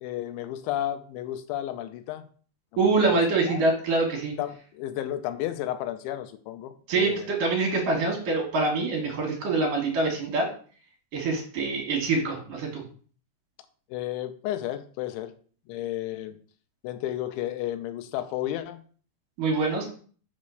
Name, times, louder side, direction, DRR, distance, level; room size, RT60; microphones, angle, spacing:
voice 1, 0.0-2.3 2.7-3.6 4.4-7.3 13.9-15.4 15.7-16.4 16.8-18.8, left 13 dB, 85° left, 9 dB, 3.0 m, -33 dB
voice 2, 2.8-4.3 6.9-10.5 11.1-12.8 19.4-19.9, right 3 dB, 55° right, 0 dB, 3.0 m, -25 dB
6.9 x 4.3 x 6.4 m, 0.44 s
omnidirectional pair, 5.2 m